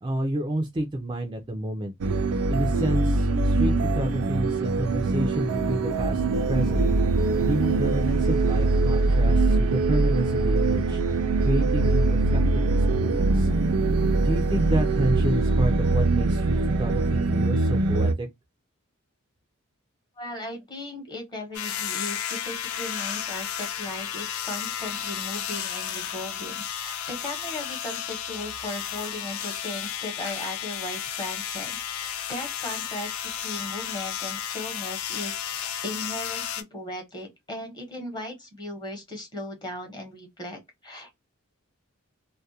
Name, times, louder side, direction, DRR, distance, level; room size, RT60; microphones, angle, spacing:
voice 1, 0.0-1.9 2.5-6.9 7.4-11.0 11.4-13.5 14.2-18.3, right 1 dB, 20° right, 0.3 m, -29 dB
sound 1, 2.0-18.1, right 3 dB, 85° right, 0.4 m, -23 dB
voice 2, 20.2-41.2, left 1 dB, 20° left, 0.8 m, -37 dB
sound 2, 21.5-36.6, left 9 dB, 80° left, 0.5 m, -33 dB
2.3 x 2.1 x 2.7 m
head